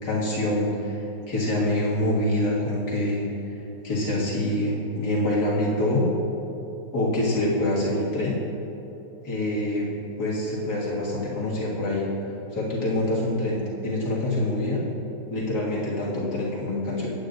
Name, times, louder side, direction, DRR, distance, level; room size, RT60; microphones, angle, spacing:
voice 1, 0.0-3.2 3.8-6.1 6.9-8.4 9.2-9.9 10.2-12.1 12.5-14.8 15.3-17.1, left 1 dB, 65° left, -6 dB, 2.2 m, -25 dB
16.5 x 9.1 x 2.6 m, 3.0 s
omnidirectional pair, 1.9 m